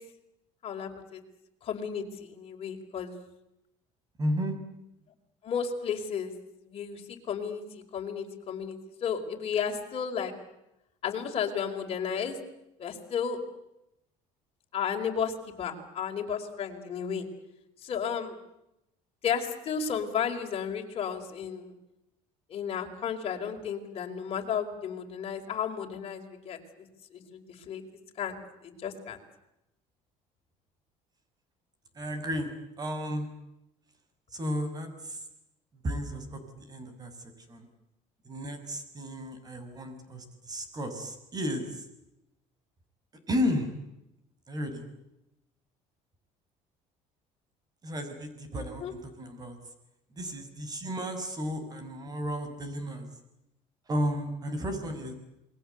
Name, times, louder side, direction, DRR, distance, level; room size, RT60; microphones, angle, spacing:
voice 1, 0.6-1.2 1.6-3.1 5.4-6.3 6.6-10.3 11.0-12.4 12.8-13.4 14.7-17.3 17.8-18.4 19.2-21.7 22.5-26.6 27.1-27.8 28.2-29.2 48.5-48.9, left 7 dB, 45° left, 3 dB, 4.9 m, -33 dB
voice 2, 4.2-4.6 31.9-32.5 32.8-33.3 34.3-35.2 35.8-37.1 37.5-37.7 38.2-41.9 43.3-43.7 44.5-44.9 47.8-49.6 50.1-53.1 53.9-55.1, equal, 30° right, 9 dB, 6.0 m, -33 dB
28.5 x 22.0 x 8.2 m, 0.87 s
cardioid pair, 130°, 14 cm